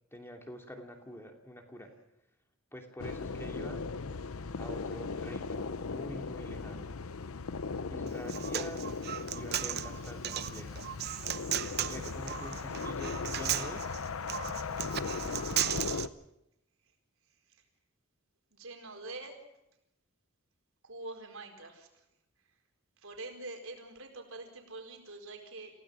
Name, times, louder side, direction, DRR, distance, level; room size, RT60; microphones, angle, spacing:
voice 1, 0.1-1.9 2.7-3.8 4.6-6.9 7.9-8.9 9.3-10.8 11.6-14.0, equal, 10° left, 3 dB, 2.7 m, -46 dB
sound 1, 3.0-16.1, left 4 dB, 85° left, 0.7 m, -38 dB
Human voice, 8.1-16.0, right 10 dB, 50° right, 0.8 m, -36 dB
voice 2, 18.5-19.4 20.8-21.9 23.0-25.7, right 2 dB, 75° right, 3 dB, 4.5 m, -45 dB
28.0 x 17.0 x 6.2 m, 0.84 s
head